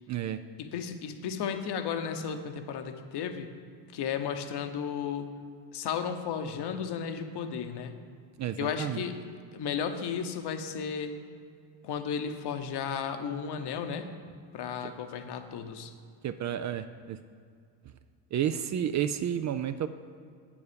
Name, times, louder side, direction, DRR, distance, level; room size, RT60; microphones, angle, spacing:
voice 1, 0.1-0.4 8.4-9.0 14.8-14.9 16.2-17.2 18.3-19.9, right 10 dB, 40° right, 11 dB, 0.4 m, -31 dB
voice 2, 0.6-3.5 3.9-5.3 5.7-7.9 8.6-9.2 9.5-11.2 11.8-14.1 14.5-15.9, left 7 dB, 55° left, 7 dB, 1.0 m, -34 dB
8.2 x 7.1 x 5.1 m, 2.2 s
supercardioid pair, 80°, 47 cm